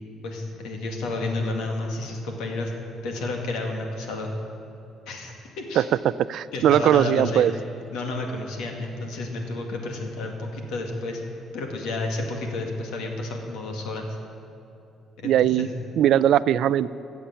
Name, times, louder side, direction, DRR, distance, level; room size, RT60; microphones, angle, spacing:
voice 1, 0.2-2.7 3.0-4.3 5.1-5.9 6.5-7.5 7.9-11.2 11.5-14.1 15.2-15.7, left 2 dB, 85° left, 2 dB, 2.1 m, -31 dB
voice 2, 5.8-7.5 15.2-15.7 16.0-17.0, right 11 dB, 70° right, 17 dB, 0.3 m, -20 dB
15.5 x 7.0 x 8.9 m, 2.9 s
cardioid pair, 120°, 0 cm